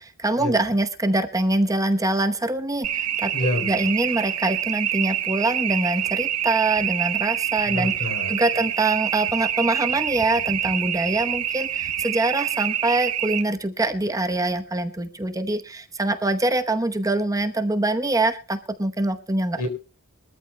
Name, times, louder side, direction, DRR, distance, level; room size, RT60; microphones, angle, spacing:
voice 1, 0.0-3.3 3.6-7.9 8.3-19.6, right 2 dB, 15° right, 7 dB, 0.9 m, -24 dB
sound 1, 2.8-13.4, right 11 dB, 80° right, 0.9 m, -26 dB
voice 2, 3.3-3.8 7.6-8.6 19.6-19.7, left 1 dB, 75° left, 7 dB, 3.8 m, -28 dB
23.5 x 13.5 x 2.2 m, 0.33 s
head